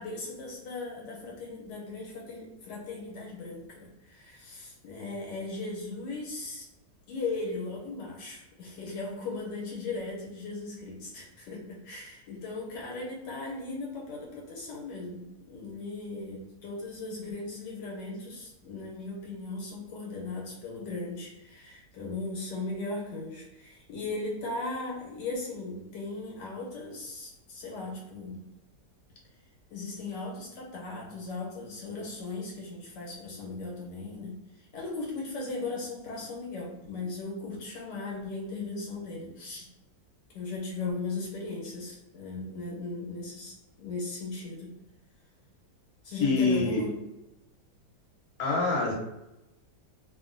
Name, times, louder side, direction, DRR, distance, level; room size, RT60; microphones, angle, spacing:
voice 1, 0.0-6.7 7.1-28.5 29.7-39.7 40.3-44.8 46.0-47.0, left 3 dB, 80° left, -3 dB, 1.4 m, -37 dB
voice 2, 46.2-46.9 48.4-48.9, left 3 dB, 60° left, -2 dB, 1.2 m, -25 dB
2.8 x 2.6 x 2.5 m, 0.93 s
omnidirectional pair, 1.9 m